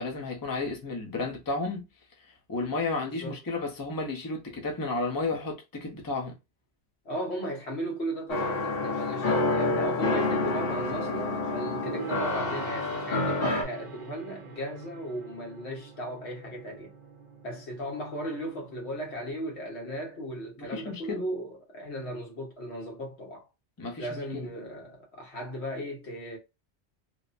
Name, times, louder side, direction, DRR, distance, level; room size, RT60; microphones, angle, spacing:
voice 1, 0.0-1.8 2.2-6.4 20.6-21.2 23.8-24.1 24.3-24.5, left 3 dB, 25° left, 0.5 m, -32 dB
voice 2, 7.0-16.9 17.4-23.4 24.0-26.4, equal, 75° left, 1.3 m, -36 dB
sound 1, 8.3-13.6, left 3 dB, 60° left, 1.1 m, -28 dB
Gong, 11.9-19.3, right 4 dB, 55° right, 0.8 m, -43 dB
3.0 x 2.1 x 2.4 m
omnidirectional pair, 1.1 m